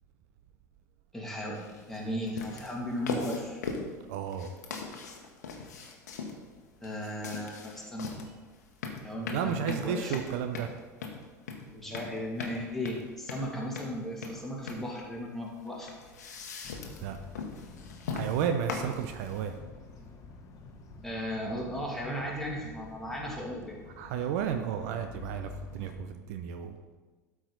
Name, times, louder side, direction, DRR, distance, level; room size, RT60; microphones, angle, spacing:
voice 1, 1.1-3.6 6.8-8.2 9.0-10.2 11.7-15.9 21.0-23.8, equal, 5° left, -3 dB, 2.2 m, -36 dB
sound 1, 1.5-19.6, left 4 dB, 70° left, 1.1 m, -41 dB
voice 2, 4.1-4.5 9.3-10.7 17.0-17.2 18.1-19.5 24.0-26.8, right 8 dB, 60° right, 7 dB, 0.6 m, -32 dB
sound 2, 16.6-25.9, left 4 dB, 35° left, 1.1 m, -49 dB
12.5 x 4.8 x 3.9 m, 1.3 s
figure-of-eight pair, 75°, 9 cm